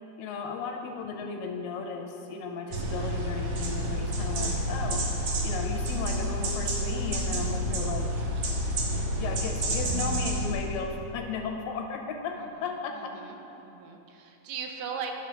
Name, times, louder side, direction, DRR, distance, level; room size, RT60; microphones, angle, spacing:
voice 1, 0.2-5.1 5.4-8.2 9.1-13.1, left 5 dB, 85° left, 4 dB, 2.5 m, -35 dB
sound 1, 2.7-10.5, right 1 dB, 60° right, 1.6 m, -29 dB
voice 2, 12.9-15.3, right 5 dB, 80° right, 3 dB, 2.4 m, -38 dB
12.5 x 4.5 x 5.7 m, 2.9 s
omnidirectional pair, 3.9 m